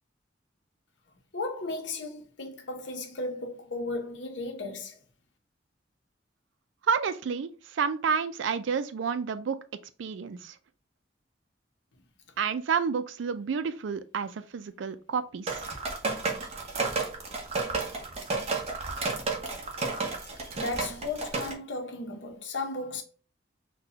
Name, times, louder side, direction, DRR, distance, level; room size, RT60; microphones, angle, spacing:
voice 1, 1.3-5.0 20.6-23.0, left 2 dB, 75° left, 0.8 m, -35 dB
voice 2, 6.8-9.6 10.0-10.6 12.4-15.7, right 6 dB, 85° right, 0.4 m, -30 dB
sound 1, 15.5-21.5, right 3 dB, 35° right, 0.7 m, -32 dB
4.0 x 2.2 x 2.7 m
head